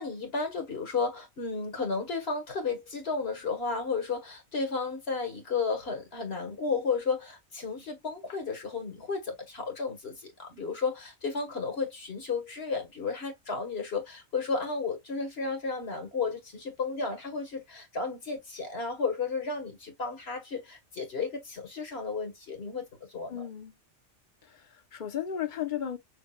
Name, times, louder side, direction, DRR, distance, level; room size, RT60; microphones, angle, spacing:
voice 1, 0.0-23.4, left 4 dB, 65° left, 1.6 m, -33 dB
voice 2, 23.3-23.7 24.5-26.0, left 10 dB, 45° left, 1.0 m, -34 dB
6.4 x 2.4 x 2.3 m
omnidirectional pair, 1.2 m